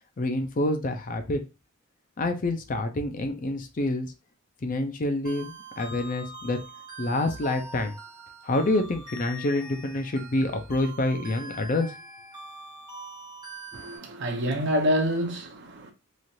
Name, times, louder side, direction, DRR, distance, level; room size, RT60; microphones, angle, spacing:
voice 1, 0.2-1.4 2.2-4.1 4.6-6.6 7.0-8.0 8.4-12.0, left 2 dB, 40° left, 0.5 m, -27 dB
sound 1, 5.2-14.0, right 2 dB, 20° right, 0.8 m, -43 dB
voice 2, 13.7-15.9, equal, 55° right, 0.7 m, -27 dB
3.1 x 2.4 x 2.6 m
head